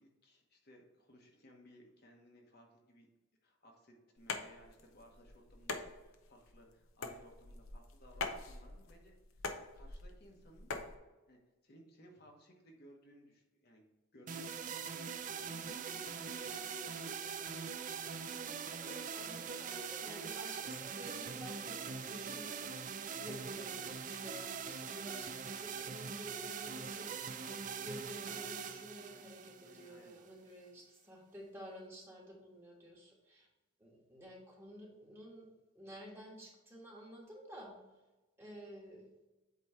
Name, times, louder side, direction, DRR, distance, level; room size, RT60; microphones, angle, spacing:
voice 1, 0.0-3.1 3.4-10.7 11.3-13.9 14.1-17.5 18.0-19.9 29.6-30.2, equal, 50° left, 1 dB, 1.1 m, -61 dB
sound 1, 4.2-10.9, left 3 dB, 80° left, 0.8 m, -44 dB
sound 2, 14.3-30.3, right 6 dB, 40° right, 0.4 m, -42 dB
voice 2, 18.8-22.7 23.2-25.3 25.6-33.5 33.8-35.5 35.7-37.7 38.4-39.1, equal, 10° right, -3 dB, 1.4 m, -52 dB
8.3 x 3.1 x 4.4 m, 1.1 s
head